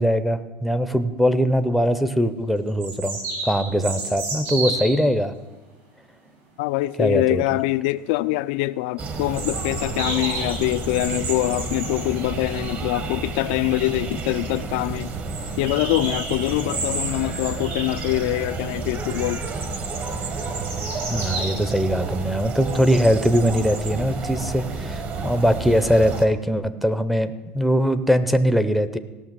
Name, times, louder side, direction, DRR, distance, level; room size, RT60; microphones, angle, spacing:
voice 1, 0.0-5.4 7.0-7.4 21.1-29.0, equal, ahead, 0.6 m, -21 dB
sound 1, 1.8-1.9 2.8-5.0 9.3-12.1 13.7-13.8 14.1-14.2 14.5-14.6 15.3-18.5 18.9-19.4 19.9-21.5, right 2 dB, 60° right, 5.2 m, -32 dB
voice 2, 6.6-15.1 15.6-19.5, left 18 dB, 85° left, 0.4 m, -24 dB
sound 2, 9.0-26.3, right 3 dB, 35° right, 1.2 m, -31 dB
16.5 x 6.0 x 7.5 m
cardioid pair, 155°, 5 cm